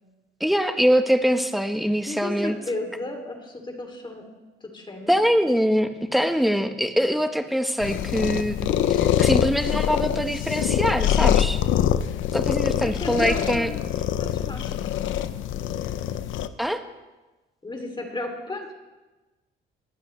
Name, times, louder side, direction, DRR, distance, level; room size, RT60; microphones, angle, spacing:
voice 1, 0.4-2.6 5.1-11.6 12.3-13.7 16.6-16.8, equal, ahead, 7 dB, 1.2 m, -23 dB
voice 2, 2.1-4.3 4.7-5.2 12.7-13.8 14.2-15.2 17.6-18.8, left 2 dB, 25° left, 3 dB, 2.9 m, -34 dB
sound 1, 7.8-16.5, left 10 dB, 80° left, 0.7 m, -24 dB
20.5 x 12.5 x 3.3 m, 1.1 s
cardioid pair, 90°, 20 cm